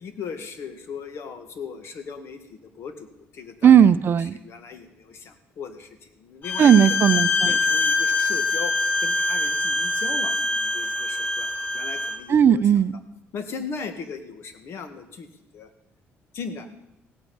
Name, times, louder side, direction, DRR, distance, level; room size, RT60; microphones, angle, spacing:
voice 1, 0.0-3.1 3.3-3.9 4.3-7.1 7.4-8.7 9.0-12.6 13.3-15.3 15.5-15.7 16.3-16.8, left 5 dB, 60° left, 8 dB, 2.0 m, -38 dB
voice 2, 3.6-4.4 6.6-7.5 12.3-12.9, right 8 dB, 45° right, 14 dB, 0.6 m, -16 dB
Bowed string instrument, 6.4-12.2, left 2 dB, 40° left, 2.0 m, -24 dB
16.5 x 8.8 x 8.6 m, 0.86 s
cardioid pair, 120°, 5 cm